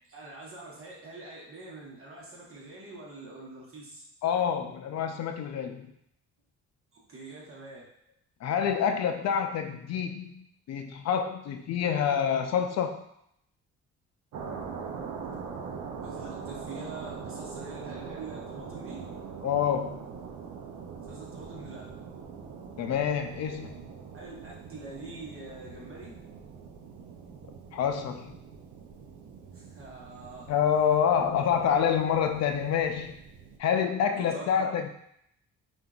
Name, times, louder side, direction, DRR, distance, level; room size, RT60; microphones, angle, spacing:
voice 1, 0.1-4.0 4.3-4.4 6.9-7.9 16.0-19.0 21.1-21.9 24.1-26.2 29.5-30.5 34.2-34.7, right 2 dB, 45° right, -4 dB, 1.1 m, -44 dB
voice 2, 4.2-5.9 8.4-13.0 19.4-20.0 22.8-23.8 27.7-28.3 30.5-33.2 33.6-34.9, left 8 dB, 60° left, 6 dB, 0.5 m, -27 dB
sound 1, 14.3-33.6, right 5 dB, 70° right, 0.6 m, -43 dB
3.6 x 2.5 x 2.3 m, 0.73 s
cardioid pair, 90°, 30 cm